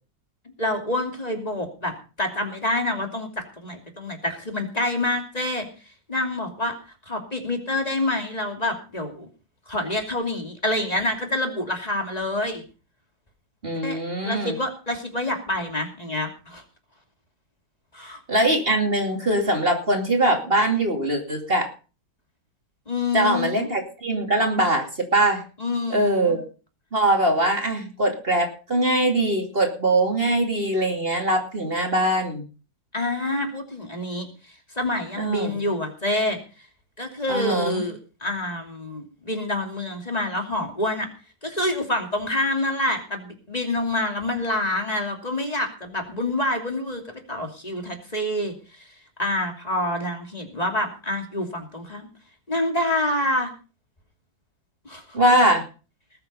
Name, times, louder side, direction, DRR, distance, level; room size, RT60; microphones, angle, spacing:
voice 1, 0.6-5.7 6.1-6.7 7.1-9.3 9.7-12.6 13.8-16.6 17.9-18.2 22.9-23.7 25.6-26.4 32.9-34.3 34.8-36.4 37.0-41.1 41.4-47.0 47.3-48.8 49.2-52.1 52.5-53.5 54.8-55.2, left 1 dB, 20° left, 4 dB, 2.8 m, -27 dB
voice 2, 13.6-14.6 18.3-21.7 23.1-25.4 25.9-26.4 26.9-32.4 35.2-35.5 37.3-37.9 55.1-55.6, right 1 dB, 30° right, 3 dB, 2.8 m, -22 dB
20.0 x 7.9 x 5.5 m, 0.35 s
omnidirectional pair, 2.0 m